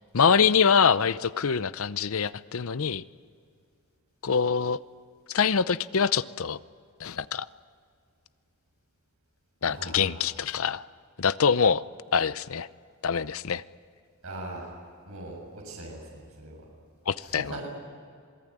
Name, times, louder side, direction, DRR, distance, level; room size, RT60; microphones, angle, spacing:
voice 1, 0.1-3.0 4.2-4.8 5.3-6.6 7.0-7.5 9.6-10.8 11.2-11.8 12.1-12.7 13.0-13.6 17.1-17.7, left 6 dB, 65° left, 16 dB, 0.7 m, -24 dB
voice 2, 9.6-10.2 14.2-14.7 15.1-16.6 17.2-17.7, right 2 dB, 70° right, -2 dB, 7.0 m, -40 dB
27.0 x 19.5 x 9.9 m, 2.3 s
head